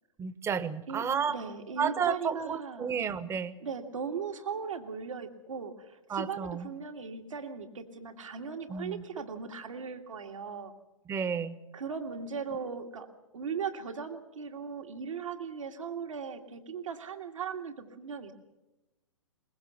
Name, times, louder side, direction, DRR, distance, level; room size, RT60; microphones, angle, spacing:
voice 1, 0.2-1.4 1.8-3.6 6.1-6.7 8.7-9.0 11.1-11.6, right 6 dB, 15° right, 15 dB, 1.0 m, -32 dB
voice 2, 0.9-3.0 3.6-10.7 11.7-13.1 13.3-18.3, right 6 dB, 75° right, 6 dB, 2.0 m, -38 dB
22.5 x 20.5 x 7.1 m, 1.0 s
figure-of-eight pair, 120°, 17 cm